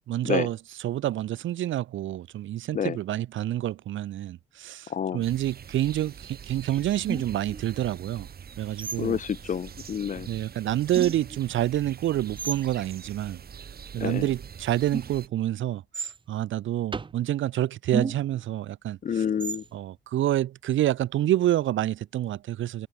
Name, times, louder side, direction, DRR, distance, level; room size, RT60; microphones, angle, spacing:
voice 1, 0.1-0.6 0.8-8.3 8.6-9.2 10.3-13.4 13.9-19.2 19.7-22.9, right 13 dB, 75° right, 1.5 m, -28 dB
voice 2, 4.9-5.2 9.0-10.3 14.0-14.3 19.0-19.6, left 7 dB, 40° left, 0.6 m, -28 dB
sound 1, 5.2-15.3, right 7 dB, 50° right, 7.4 m, -44 dB
sound 2, 7.1-7.6 8.8-9.2 10.2-10.3 10.9-11.4 12.4-12.6 14.9-15.3 15.9-16.2 16.9-17.2 17.9-18.4 19.4-19.7, right 5 dB, 25° right, 0.7 m, -33 dB
cardioid pair, 90°, 20 cm